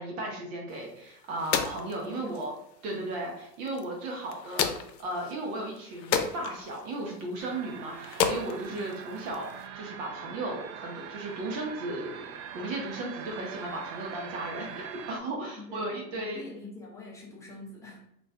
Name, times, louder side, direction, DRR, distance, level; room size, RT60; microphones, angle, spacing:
voice 1, 0.0-2.5 2.8-12.2 12.5-16.4, right 2 dB, 50° right, -1 dB, 0.8 m, -35 dB
sound 1, 0.7-9.7, left 7 dB, 90° left, 0.5 m, -35 dB
voice 2, 2.1-2.4 2.9-3.1 8.7-9.0 15.6-18.0, left 2 dB, 5° left, -3 dB, 0.4 m, -45 dB
sound 2, 7.4-15.2, right 8 dB, 75° right, 0.5 m, -43 dB
2.4 x 2.2 x 3.3 m, 0.74 s
hypercardioid pair, 105°, 50 cm